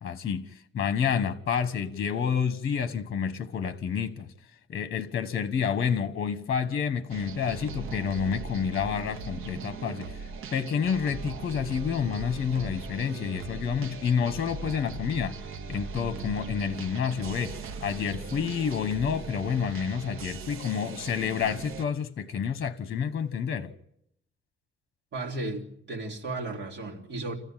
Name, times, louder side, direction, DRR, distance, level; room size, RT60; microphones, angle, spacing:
voice 1, 0.0-4.3 4.7-10.2 10.5-15.4 15.7-23.7, left 7 dB, 50° left, 1.2 m, -29 dB
sound 1, 7.1-21.8, right 5 dB, 85° right, 1.1 m, -39 dB
voice 2, 25.1-27.4, right 2 dB, 55° right, 3.6 m, -34 dB
28.0 x 15.0 x 9.1 m
wide cardioid pair, 150°, 21 cm